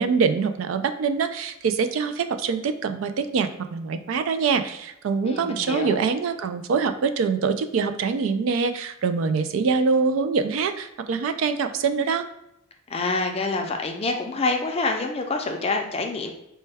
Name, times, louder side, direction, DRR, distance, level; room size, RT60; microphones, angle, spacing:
voice 1, 0.0-12.3, right 5 dB, 75° right, 9 dB, 0.3 m, -24 dB
voice 2, 5.2-6.0 12.9-16.3, left 3 dB, 30° left, 3 dB, 0.4 m, -26 dB
4.3 x 2.2 x 3.3 m, 0.82 s
head